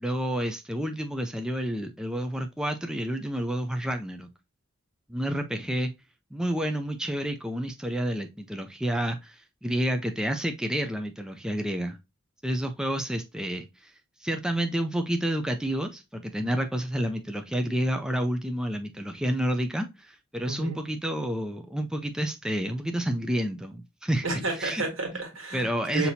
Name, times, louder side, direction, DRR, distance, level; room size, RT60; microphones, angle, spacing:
voice 1, 0.0-4.3 5.1-5.9 6.3-12.0 12.4-13.9 14.2-24.3 24.6-24.8 25.5-26.1, right 1 dB, 5° right, 0.3 m, -29 dB
voice 2, 20.4-20.8 24.2-26.1, right 3 dB, 75° right, 1.7 m, -31 dB
5.8 x 2.8 x 2.6 m
head